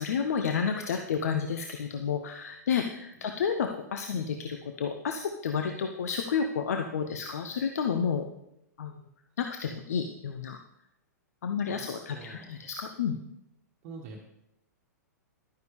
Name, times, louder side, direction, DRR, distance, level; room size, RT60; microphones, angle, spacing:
voice 1, 0.0-8.2 8.8-8.9 9.4-10.6 11.4-13.2, left 6 dB, 60° left, 5 dB, 0.8 m, -31 dB
voice 2, 11.7-12.7 13.8-14.2, right 4 dB, 35° right, -2 dB, 1.5 m, -46 dB
12.0 x 9.4 x 3.2 m, 0.83 s
figure-of-eight pair, 105°, 9 cm